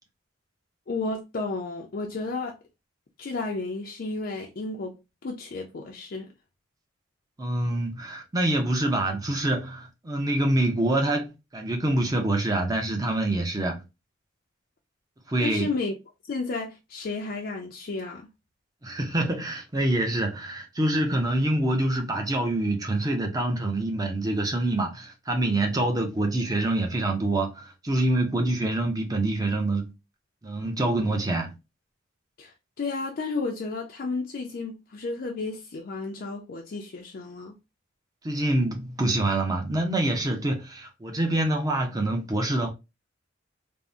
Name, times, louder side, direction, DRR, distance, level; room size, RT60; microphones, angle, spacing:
voice 1, 0.9-2.6 3.2-5.0 5.2-6.3 15.4-15.9 16.2-18.3 32.4-37.5, left 3 dB, 50° left, 0.4 m, -32 dB
voice 2, 7.4-13.8 15.3-15.7 18.8-29.9 30.4-31.5 38.2-42.7, right 1 dB, 20° right, 0.5 m, -26 dB
3.5 x 2.0 x 2.5 m
head